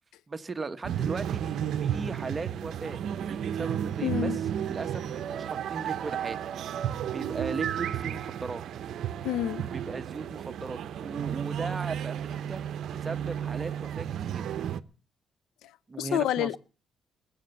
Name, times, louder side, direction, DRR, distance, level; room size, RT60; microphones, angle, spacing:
voice 1, 0.3-3.0 3.3-6.4 7.1-8.6 9.7-14.5 15.9-16.5, right 4 dB, 30° right, 1.1 m, -37 dB
sound 1, 0.8-14.8, right 9 dB, 70° right, 0.7 m, -33 dB
voice 2, 4.0-4.4 9.2-9.6 16.0-16.6, left 11 dB, 85° left, 0.6 m, -28 dB
21.0 x 8.0 x 6.6 m
cardioid pair, 90°, 0 cm